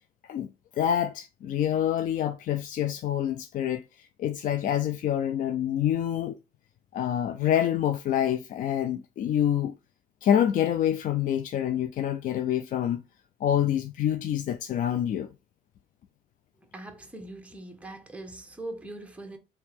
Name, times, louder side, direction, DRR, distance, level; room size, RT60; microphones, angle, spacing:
voice 1, 0.8-6.4 6.9-9.7 10.2-13.0 13.4-15.3, left 10 dB, 50° left, 0.4 m, -27 dB
voice 2, 16.7-19.4, right 2 dB, 5° right, 0.9 m, -41 dB
3.4 x 2.9 x 4.4 m
cardioid pair, 110°, 17 cm